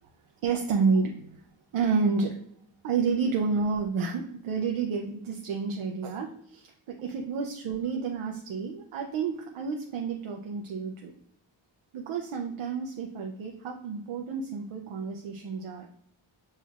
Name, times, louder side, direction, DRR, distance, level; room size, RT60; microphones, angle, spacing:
voice 1, 0.4-1.4 1.7-2.3 2.8-11.1 11.9-15.9, right 5 dB, 90° right, 2 dB, 0.6 m, -30 dB
5.5 x 3.2 x 2.4 m, 0.68 s
wide cardioid pair, 125°, 48 cm